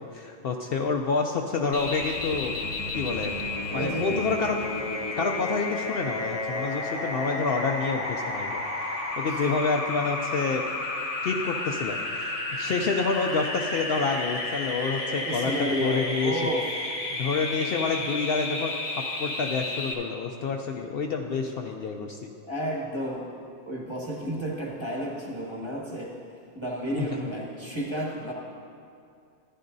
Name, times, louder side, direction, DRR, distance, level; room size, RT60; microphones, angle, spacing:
voice 1, 0.0-2.6 2.9-3.3 3.7-4.6 5.2-8.6 9.2-10.6 11.2-15.0 15.3-15.5 15.8-16.3 17.1-18.7 19.2-22.3, left 4 dB, 65° left, 2 dB, 0.7 m, -28 dB
sound 1, 1.7-19.9, left 2 dB, 35° left, 0.9 m, -32 dB
voice 2, 2.8-4.2 9.3-9.5 15.0-16.7 22.5-23.3 23.7-28.3, right 1 dB, 25° right, -2 dB, 1.2 m, -32 dB
13.5 x 10.0 x 2.7 m, 2.4 s
omnidirectional pair, 1.2 m